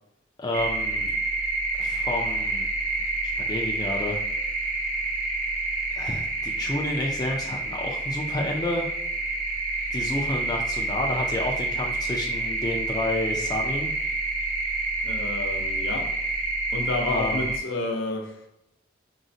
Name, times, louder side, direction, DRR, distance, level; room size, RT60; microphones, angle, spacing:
voice 1, 0.4-1.1 1.8-2.7 3.2-4.2 6.0-8.9 9.9-13.9 17.1-17.5, left 1 dB, 20° left, 0 dB, 0.4 m, -30 dB
sound 1, 0.5-17.6, right 2 dB, 45° right, 0.6 m, -28 dB
voice 2, 15.0-16.1 16.7-18.4, left 2 dB, 90° left, 2 dB, 0.6 m, -30 dB
3.8 x 2.1 x 2.6 m, 0.85 s
head